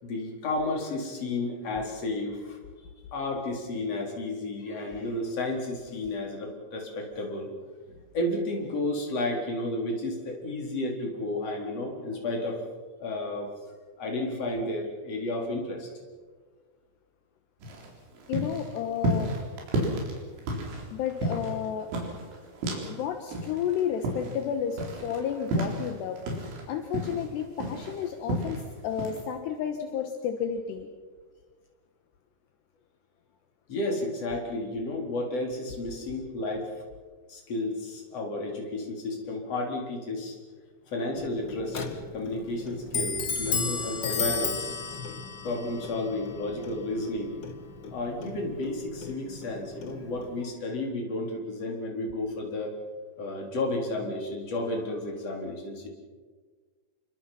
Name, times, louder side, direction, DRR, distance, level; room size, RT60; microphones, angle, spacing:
voice 1, 0.0-7.5 7.9-12.6 13.0-13.5 14.0-15.9 33.7-36.7 37.3-40.4 40.9-44.8 45.4-47.4 47.9-52.8 53.2-55.9, left 2 dB, 35° left, 0 dB, 4.9 m, -32 dB
sound 1, 17.6-23.0 23.3-26.6 26.9-28.6 29.0-29.2, right 1 dB, 85° right, 6.4 m, -32 dB
voice 2, 18.3-19.3 20.9-21.9 22.9-30.9, left 8 dB, 75° left, 5 dB, 3.3 m, -32 dB
Clock, 41.1-50.4, left 5 dB, 55° left, 1.2 m, -35 dB
28.0 x 24.0 x 5.9 m, 1.4 s
omnidirectional pair, 5.2 m